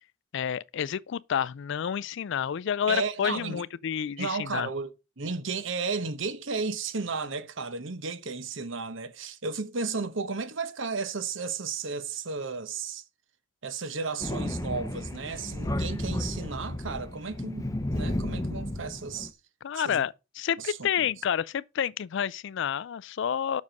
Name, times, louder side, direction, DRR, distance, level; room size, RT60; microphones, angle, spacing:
voice 1, 0.3-4.7 19.6-23.6, left 8 dB, 60° left, 0.4 m, -29 dB
voice 2, 2.9-3.6 4.2-13.0 13.6-19.3 19.7-20.0 20.6-21.1, right 4 dB, 65° right, 1.0 m, -34 dB
Thunder, 14.2-19.3, left 1 dB, 15° left, 0.7 m, -33 dB
7.4 x 6.1 x 5.2 m
head